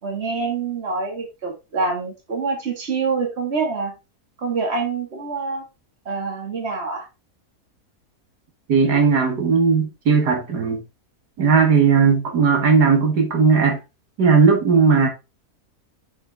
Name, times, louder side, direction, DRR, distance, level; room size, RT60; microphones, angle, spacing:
voice 1, 0.0-4.0 4.4-5.6 6.1-7.1, right 4 dB, 40° right, 2.2 m, -26 dB
voice 2, 8.7-10.8 11.4-13.8 14.2-15.1, right 5 dB, 85° right, 2.3 m, -17 dB
7.0 x 5.5 x 3.5 m
omnidirectional pair, 1.7 m